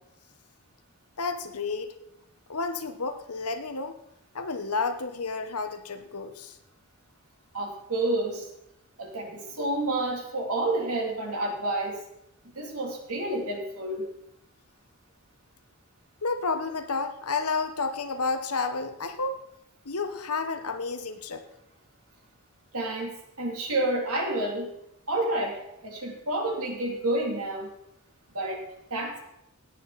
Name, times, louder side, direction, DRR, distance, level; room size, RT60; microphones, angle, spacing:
voice 1, 1.2-1.9 2.5-3.9 4.3-6.6 16.2-19.4 19.8-21.4, left 4 dB, 85° left, 8 dB, 1.3 m, -31 dB
voice 2, 7.5-8.5 9.0-12.0 12.5-14.1 22.7-23.1 23.4-24.7 25.1-25.6 25.8-27.7 28.3-28.6 28.9-29.2, right 1 dB, 75° right, 0 dB, 3.3 m, -29 dB
17.0 x 9.3 x 4.3 m, 0.80 s
head